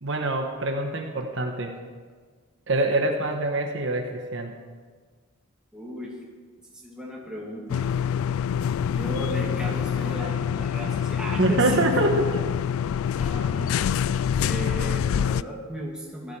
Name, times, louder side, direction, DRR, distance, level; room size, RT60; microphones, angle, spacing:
voice 1, 0.0-1.8 2.7-4.5 11.3-12.5, right 2 dB, 60° right, 3 dB, 1.3 m, -25 dB
voice 2, 5.7-6.2 6.8-8.1 8.9-11.8 13.1-13.9 14.4-16.4, equal, 5° right, -3 dB, 2.6 m, -35 dB
sound 1, 7.7-15.4, left 8 dB, 80° left, 0.3 m, -26 dB
16.5 x 12.0 x 4.8 m, 1.5 s
head